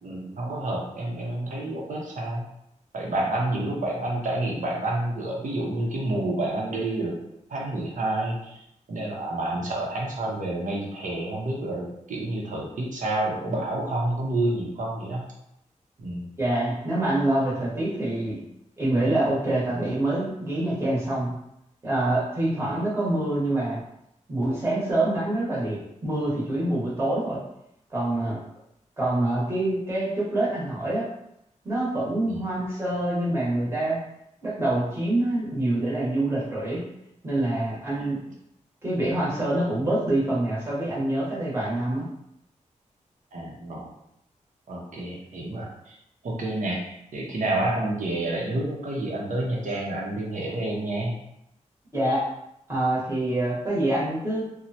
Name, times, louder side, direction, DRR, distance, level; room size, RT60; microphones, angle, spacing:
voice 1, 0.0-2.5 2.9-7.2 7.5-8.6 8.9-15.2 16.0-16.2 32.3-32.4 37.9-38.1 43.3-43.9 44.7-46.0 46.2-51.2, right 1 dB, 75° right, -2 dB, 0.7 m, -29 dB
voice 2, 16.4-18.4 18.8-21.3 21.8-23.8 24.3-27.4 27.9-28.4 29.0-31.1 31.6-34.0 34.4-36.8 37.2-38.2 38.8-42.1 51.9-52.3 52.7-54.4, right 1 dB, 20° right, -7 dB, 1.0 m, -26 dB
3.0 x 2.1 x 2.7 m, 0.79 s
wide cardioid pair, 150°, 13 cm